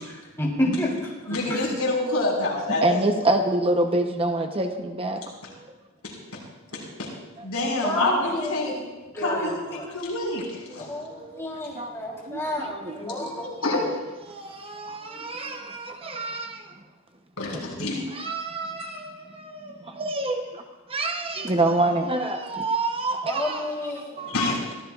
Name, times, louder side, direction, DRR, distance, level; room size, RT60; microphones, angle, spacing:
voice 1, 0.1-0.9 1.2-1.8 7.8-8.7 9.1-9.6 10.8-13.5 15.1-15.3 23.2-24.3, left 1 dB, 15° left, -4 dB, 3.5 m, -30 dB
voice 2, 1.3-3.0 6.0-6.1 6.7-7.1 7.4-8.8 9.2-11.0 13.6-13.8 17.4-18.0 18.8-19.0 24.3-24.6, left 2 dB, 80° left, -3 dB, 5.1 m, -27 dB
voice 3, 2.8-5.7 11.1-11.4 11.7-11.9 12.2-13.7 14.3-16.8 17.8-20.6 20.9-24.3, right 2 dB, 25° right, 4 dB, 0.8 m, -27 dB
24.5 x 15.5 x 2.4 m, 1.2 s
head